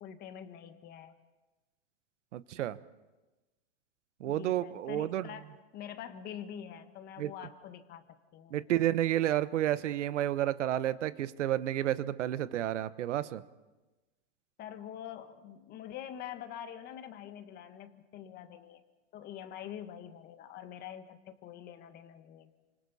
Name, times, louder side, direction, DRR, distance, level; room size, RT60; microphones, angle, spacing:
voice 1, 0.0-1.1 4.2-8.6 14.6-18.8 19.1-22.5, left 9 dB, 25° left, 9 dB, 1.5 m, -45 dB
voice 2, 2.3-2.8 4.2-5.3 7.2-7.3 8.5-13.4, right 12 dB, 80° right, 14 dB, 1.1 m, -31 dB
29.0 x 26.5 x 4.2 m, 1.1 s
supercardioid pair, 155°, 35 cm